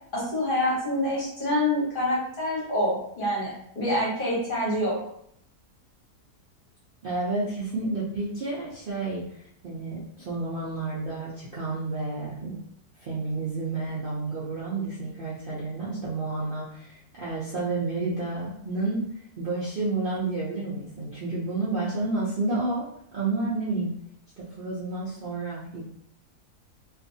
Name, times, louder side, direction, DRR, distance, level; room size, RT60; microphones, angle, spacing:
voice 1, 0.1-5.0, left 1 dB, 40° left, -6 dB, 0.9 m, -26 dB
voice 2, 7.0-12.6 13.0-19.1 19.4-22.9 23.1-23.9 24.4-25.8, right 3 dB, 90° right, -8 dB, 0.4 m, -30 dB
2.5 x 2.4 x 2.6 m, 0.69 s
omnidirectional pair, 1.7 m